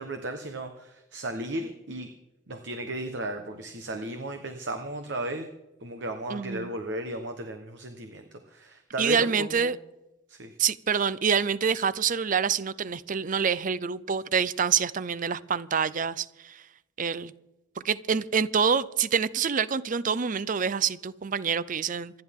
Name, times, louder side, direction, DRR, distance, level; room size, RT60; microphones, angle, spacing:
voice 1, 0.0-2.1 2.5-5.5 5.8-9.7 10.3-10.6, right 1 dB, 65° right, 1.2 m, -35 dB
voice 2, 6.3-6.7 9.0-9.8 10.6-16.6 17.0-17.3 17.8-22.2, right 6 dB, 45° right, 0.5 m, -26 dB
27.0 x 10.5 x 3.7 m
head